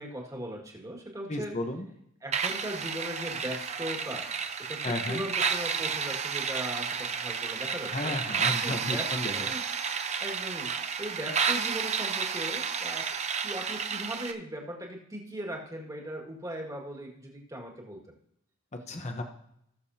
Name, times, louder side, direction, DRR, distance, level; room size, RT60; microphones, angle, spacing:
voice 1, 0.0-1.5 2.2-4.3 4.7-8.1 8.6-9.6 10.2-13.2 13.4-18.0, right 1 dB, 15° right, 0 dB, 2.0 m, -39 dB
voice 2, 1.3-1.9 4.8-5.2 7.9-9.5 18.7-19.2, left 1 dB, 30° left, 4 dB, 0.9 m, -33 dB
sound 1, 2.3-14.3, right 6 dB, 30° right, 0.7 m, -31 dB
19.0 x 7.0 x 2.8 m, 0.75 s
head